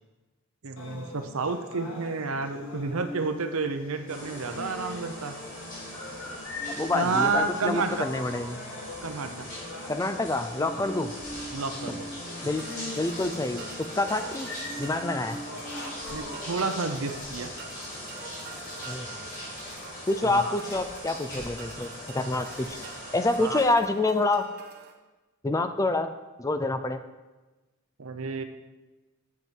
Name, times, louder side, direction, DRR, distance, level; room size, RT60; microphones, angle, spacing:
voice 1, 0.6-5.3 6.9-8.1 9.0-9.5 11.5-12.1 16.1-17.5 20.2-20.6 23.4-23.6 28.0-28.4, right 4 dB, 85° right, 9 dB, 0.7 m, -30 dB
sound 1, 0.8-16.7, left 1 dB, 60° left, 1.7 m, -41 dB
sound 2, 4.1-23.6, left 1 dB, 35° left, 3.0 m, -41 dB
voice 2, 6.7-8.6 9.9-11.1 12.4-12.7 13.0-13.6 13.9-14.5 14.8-15.4 18.9-19.1 20.1-22.8 23.1-24.5 25.4-26.1 26.4-27.0, left 2 dB, 15° left, 9 dB, 0.4 m, -27 dB
sound 3, 12.6-24.9, right 5 dB, 50° right, 1.1 m, -47 dB
8.1 x 7.4 x 4.6 m, 1.2 s
head